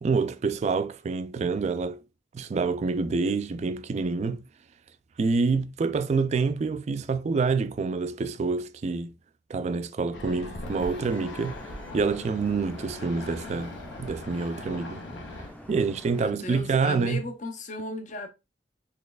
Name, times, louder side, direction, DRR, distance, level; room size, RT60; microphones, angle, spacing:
voice 1, 0.0-2.0 2.3-4.4 5.2-9.1 9.5-11.6 11.9-15.0 15.7-17.2, right 4 dB, 40° right, 0.3 m, -27 dB
sound 1, 10.1-15.5, left 2 dB, 70° left, 0.8 m, -41 dB
Vehicle horn car horn honking / Traffic noise roadway noise, 10.6-16.3, left 1 dB, 10° left, 0.6 m, -46 dB
voice 2, 16.1-18.3, left 2 dB, 45° left, 0.7 m, -35 dB
4.1 x 3.1 x 2.3 m
head